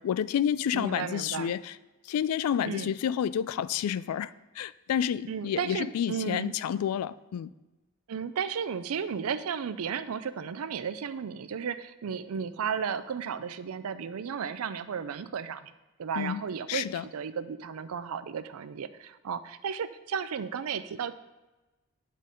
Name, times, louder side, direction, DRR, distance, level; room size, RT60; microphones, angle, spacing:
voice 1, 0.0-1.7 2.0-7.5 16.2-16.4 16.7-17.1, left 9 dB, 85° left, 17 dB, 0.3 m, -30 dB
voice 2, 0.7-1.5 2.6-2.9 5.3-6.6 8.1-15.7 16.0-21.1, right 7 dB, 80° right, 13 dB, 0.4 m, -34 dB
9.5 x 3.8 x 5.1 m, 1.1 s
head